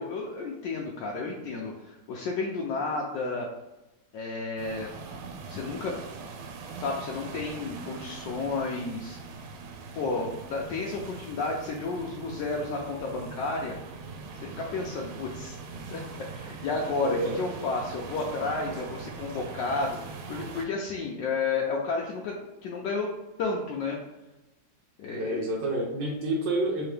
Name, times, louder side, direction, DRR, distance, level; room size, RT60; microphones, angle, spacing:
voice 1, 0.0-3.5 4.1-4.9 5.5-6.0 6.8-9.2 9.9-13.7 14.4-15.6 15.9-16.0 16.3-22.3 22.6-23.1 23.4-24.0 25.0-25.5, left 3 dB, 75° left, -2 dB, 1.1 m, -32 dB
sound 1, 4.6-20.7, right 4 dB, 85° right, 1.4 m, -42 dB
voice 2, 17.0-17.4 25.1-26.9, right 1 dB, 70° right, -3 dB, 1.2 m, -28 dB
3.5 x 2.8 x 3.2 m, 1.0 s
omnidirectional pair, 2.2 m